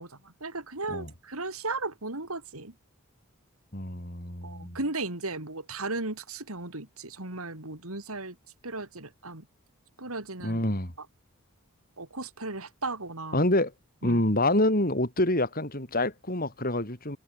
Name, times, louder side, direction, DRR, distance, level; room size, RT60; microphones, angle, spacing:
voice 1, 0.0-2.7 4.4-8.4 8.6-9.5 10.0-10.6 11.0-11.1 12.0-13.4 14.0-14.2, right 3 dB, 80° right, 4.3 m, -36 dB
voice 2, 3.7-4.8 10.4-10.9 13.3-13.7 14.0-17.2, left 1 dB, 40° left, 6.8 m, -26 dB
head